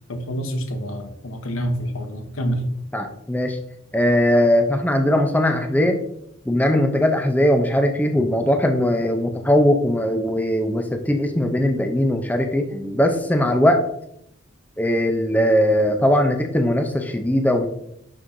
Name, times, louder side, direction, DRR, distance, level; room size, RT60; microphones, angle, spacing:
voice 1, 0.1-2.6, equal, 80° left, 6 dB, 1.0 m, -27 dB
voice 2, 2.9-3.6 3.9-6.0 6.5-13.8 14.8-17.7, left 1 dB, 10° left, 5 dB, 0.5 m, -19 dB
6.2 x 6.2 x 2.7 m, 0.75 s
head